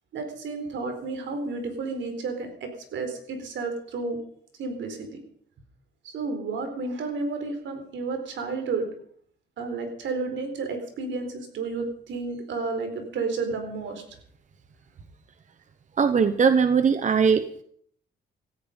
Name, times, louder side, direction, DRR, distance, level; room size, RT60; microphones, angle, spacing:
voice 1, 0.1-4.2 4.6-5.1 6.0-8.9 9.6-14.0, right 3 dB, 70° right, 6 dB, 4.4 m, -31 dB
voice 2, 16.0-17.6, right 6 dB, 40° right, 11 dB, 1.0 m, -20 dB
17.0 x 14.0 x 5.3 m, 0.62 s
cardioid pair, 90°, 20 cm